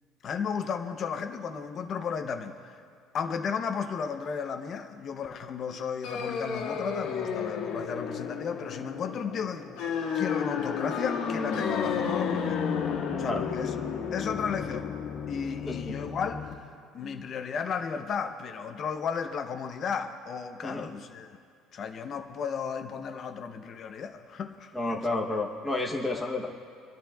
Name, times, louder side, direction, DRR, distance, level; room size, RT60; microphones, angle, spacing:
voice 1, 0.2-2.8 3.1-9.8 10.1-12.6 13.2-13.7 14.1-14.9 15.3-16.5 16.9-21.3 21.7-25.0 26.1-26.3, left 6 dB, 30° left, 6 dB, 0.6 m, -34 dB
sound 1, 6.0-16.5, left 6 dB, 80° left, 1.5 m, -32 dB
voice 2, 24.7-26.5, left 2 dB, ahead, -2 dB, 0.8 m, -31 dB
29.5 x 10.5 x 2.3 m, 2.4 s
cardioid pair, 175°, 0 cm